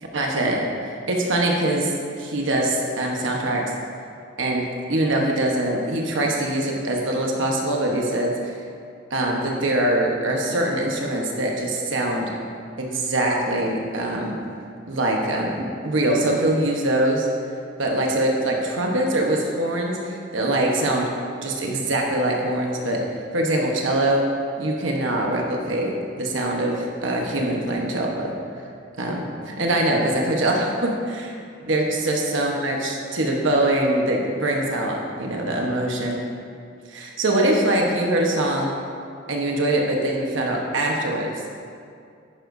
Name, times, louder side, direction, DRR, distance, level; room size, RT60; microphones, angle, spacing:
voice 1, 0.1-1.9 2.2-3.6 4.4-8.3 9.1-12.3 12.8-14.4 14.9-17.3 17.8-21.1 21.4-23.0 23.3-24.2 24.6-28.3 29.0-31.3 31.6-36.2 36.9-38.7 39.3-41.3, right 1 dB, 85° right, 0 dB, 1.1 m, -23 dB
10.5 x 9.9 x 2.7 m, 2.3 s
head